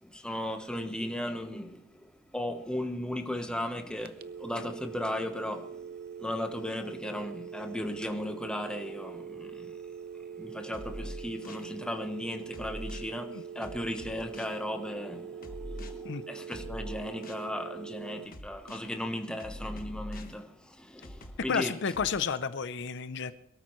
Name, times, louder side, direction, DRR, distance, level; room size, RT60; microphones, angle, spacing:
voice 1, 0.0-5.9 6.2-9.9 10.3-21.7, left 1 dB, 5° left, 1.0 m, -36 dB
sound 1, 4.1-18.3, right 7 dB, 50° right, 0.6 m, -43 dB
sound 2, 10.7-11.7 12.5-13.1 13.6-14.6 15.4-15.9 16.5-17.5 18.3-18.9 19.4-20.4 21.0-22.1, equal, 45° left, 1.3 m, -42 dB
voice 2, 21.5-23.3, left 6 dB, 60° left, 0.6 m, -31 dB
22.5 x 13.0 x 3.1 m
head